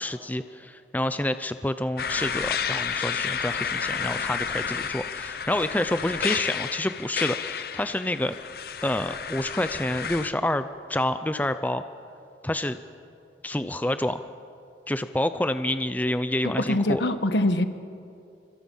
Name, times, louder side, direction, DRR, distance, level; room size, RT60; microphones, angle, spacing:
voice 1, 0.0-8.3 8.8-11.8 12.4-12.8 13.4-14.2 14.9-17.0, left 1 dB, 10° left, 11 dB, 0.5 m, -28 dB
sound 1, 2.0-10.3, left 7 dB, 55° left, 0.8 m, -31 dB
voice 2, 16.4-17.7, left 1 dB, 80° left, 10 dB, 1.3 m, -24 dB
26.0 x 25.0 x 5.6 m, 2.6 s
head